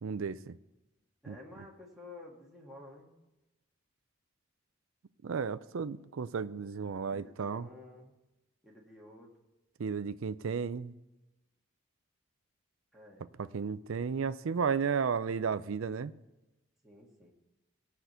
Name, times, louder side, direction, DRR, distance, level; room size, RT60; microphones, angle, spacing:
voice 1, 0.0-0.6 1.3-1.4 5.2-7.7 9.8-11.0 13.4-16.1, right 6 dB, 75° right, 14 dB, 0.5 m, -33 dB
voice 2, 1.2-3.2 7.1-8.2 8.6-9.3 12.9-13.2 16.8-17.3, left 2 dB, ahead, -4 dB, 1.7 m, -52 dB
15.5 x 5.9 x 8.0 m, 1.0 s
head